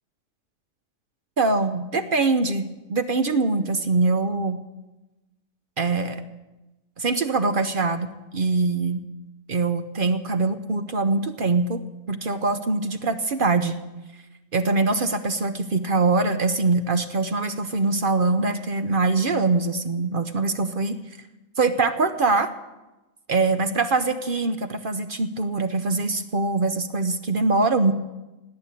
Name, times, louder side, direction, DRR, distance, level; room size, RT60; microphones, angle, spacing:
voice 1, 1.4-4.6 5.8-6.2 7.0-9.0 9.5-11.8 12.1-13.8 14.5-21.0 21.6-22.5 23.3-27.9, right 3 dB, 50° right, 9 dB, 0.9 m, -23 dB
18.5 x 9.1 x 8.3 m, 1.1 s
omnidirectional pair, 1.3 m